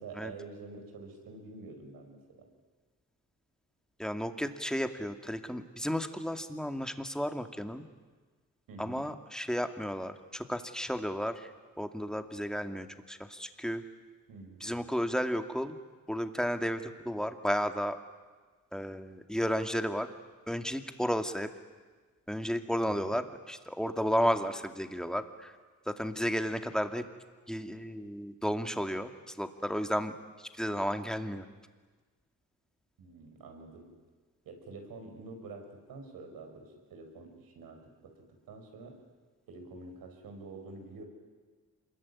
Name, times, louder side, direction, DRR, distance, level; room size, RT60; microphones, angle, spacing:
voice 1, 0.0-2.5 8.7-9.1 14.3-14.8 22.8-23.2 33.0-33.9 34.4-38.9 39.5-41.1, right 3 dB, 85° right, 4 dB, 5.7 m, -47 dB
voice 2, 4.0-7.8 8.8-11.5 11.8-13.8 14.6-15.8 16.1-18.0 18.7-20.1 20.5-21.5 22.3-25.5 25.9-27.0 27.5-30.1 30.4-31.5, equal, ahead, 7 dB, 2.4 m, -33 dB
26.0 x 22.0 x 9.8 m, 1.4 s
cardioid pair, 70°, 34 cm